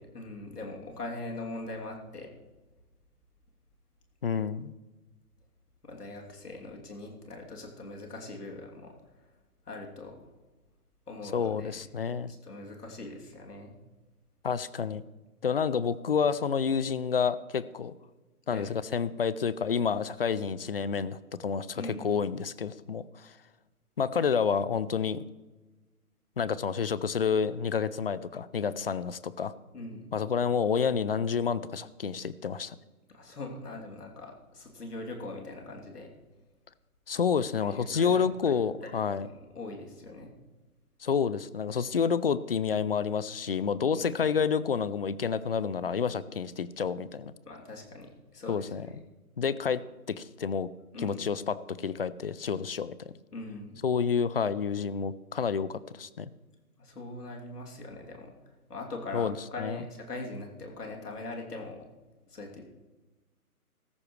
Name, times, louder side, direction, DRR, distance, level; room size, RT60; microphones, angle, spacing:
voice 1, 0.0-2.3 5.8-8.9 9.7-10.3 11.1-11.8 12.3-13.7 18.5-18.7 21.7-22.2 29.7-30.1 33.1-36.1 37.5-38.5 38.8-40.3 43.9-44.0 47.4-49.0 50.9-51.3 53.3-53.8 56.8-58.3 58.7-61.9 62.3-62.6, left 2 dB, 85° left, 0 dB, 3.1 m, -41 dB
voice 2, 4.2-4.7 11.3-12.3 14.4-15.0 15.4-17.9 18.5-23.4 24.0-25.2 26.4-29.5 30.1-32.8 37.1-39.3 41.0-47.3 48.5-48.9 49.4-49.8 50.1-50.7 51.0-53.1 53.8-56.3 59.1-59.8, left 6 dB, 40° left, 17 dB, 0.4 m, -29 dB
15.5 x 14.0 x 3.2 m, 1.2 s
hypercardioid pair, 145°, 46 cm